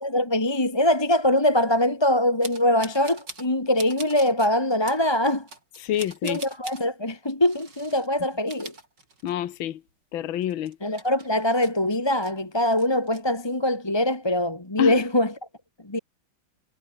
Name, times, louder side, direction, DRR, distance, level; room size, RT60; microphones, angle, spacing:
voice 1, 0.0-5.5 6.2-8.7 10.8-15.3 15.8-16.0, left 1 dB, 15° left, 1.7 m, -23 dB
sound 1, 2.4-3.5 3.8-4.5 4.9-5.0 5.5-6.8 7.4-8.1 8.4-9.6 9.9-10.0 10.4-12.3 12.7-13.2, right 3 dB, 60° right, 5.7 m, -43 dB
voice 2, 5.8-6.4 9.2-9.8 10.1-10.8 14.8-15.0, left 11 dB, 80° left, 1.9 m, -27 dB
omnidirectional pair, 2.2 m